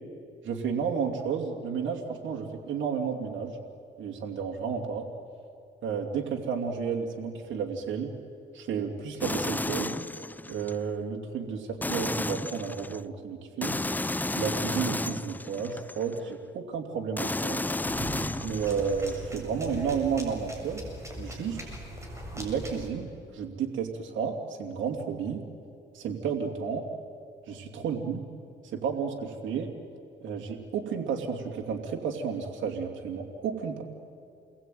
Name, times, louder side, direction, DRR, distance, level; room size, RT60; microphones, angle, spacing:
voice 1, 0.4-3.6 4.0-5.1 5.8-8.1 8.5-10.0 10.5-13.8 14.4-17.6 18.4-20.9 21.2-21.6 22.3-25.4 25.9-26.8 27.5-28.2 28.7-29.7 30.2-33.8, right 6 dB, 75° right, 1 dB, 2.7 m, -32 dB
sound 1, 9.2-10.8 11.8-13.0 13.6-16.2 17.2-19.2, left 2 dB, 10° left, 0.6 m, -32 dB
sound 2, 17.8-22.9, equal, 15° right, 7.3 m, -39 dB
29.0 x 21.5 x 9.3 m, 2.6 s
cardioid pair, 90°, 20 cm